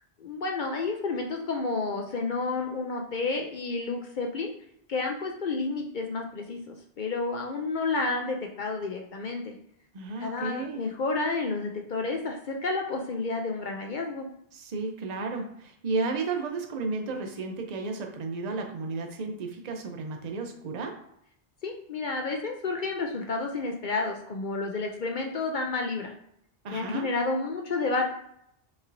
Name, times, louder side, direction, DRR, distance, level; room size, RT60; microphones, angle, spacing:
voice 1, 0.2-4.5 4.9-9.5 10.2-14.3 21.6-26.1 26.7-28.1, left 3 dB, 55° left, 2 dB, 0.7 m, -30 dB
voice 2, 9.9-10.8 14.5-21.0 26.6-27.1, right 3 dB, 45° right, 3 dB, 0.7 m, -33 dB
5.3 x 3.1 x 2.6 m, 0.74 s
omnidirectional pair, 1.1 m